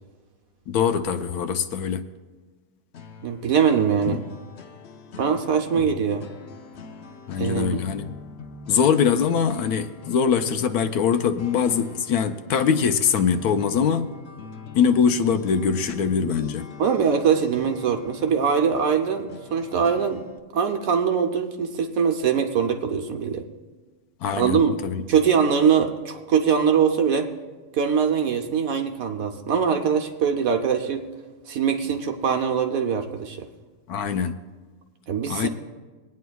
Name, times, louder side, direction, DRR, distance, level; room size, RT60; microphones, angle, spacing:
voice 1, 0.7-2.0 4.1-4.2 5.8-5.9 7.3-8.1 8.7-14.1 14.7-16.7 24.2-25.0 33.9-34.3 35.3-35.5, left 7 dB, 75° left, 8 dB, 1.1 m, -22 dB
sound 1, 2.9-20.4, left 5 dB, 55° left, 0.7 m, -44 dB
voice 2, 3.2-4.2 5.2-6.2 7.4-7.8 16.8-20.2 20.5-23.4 24.3-24.8 25.1-27.3 27.7-31.1 31.5-33.5 35.1-35.5, right 7 dB, 65° right, 5 dB, 1.1 m, -22 dB
24.0 x 9.4 x 2.3 m, 1.3 s
omnidirectional pair, 1.7 m